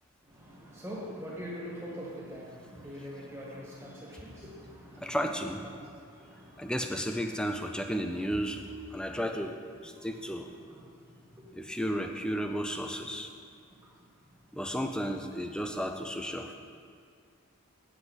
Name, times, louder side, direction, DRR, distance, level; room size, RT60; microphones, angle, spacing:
voice 1, 0.3-5.2 5.8-7.2 9.0-9.4 10.0-10.8 11.3-11.6, equal, 10° right, -5 dB, 1.5 m, -44 dB
voice 2, 5.0-5.6 6.6-8.6 8.9-10.5 11.6-13.3 14.5-16.5, equal, 5° left, 5 dB, 0.3 m, -33 dB
7.9 x 7.7 x 4.0 m, 2.2 s
head